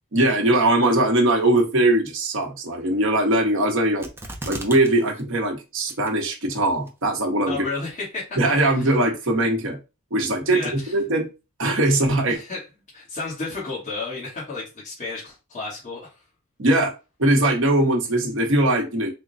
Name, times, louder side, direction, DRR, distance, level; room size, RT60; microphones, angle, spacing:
voice 1, 0.1-4.1 4.5-7.5 8.4-9.8 10.1-10.6 10.9-11.3 11.6-12.4 16.6-16.9 17.2-19.1, right 1 dB, 60° right, 1.0 m, -20 dB
sound 1, 4.0-4.9 5.2-5.3 5.9-6.3 6.9-7.0, right 2 dB, 10° right, 0.5 m, -35 dB
voice 2, 7.5-8.9 10.5-10.9 12.3-12.6 12.9-16.2, left 3 dB, 30° left, 1.3 m, -32 dB
3.6 x 2.2 x 3.9 m
head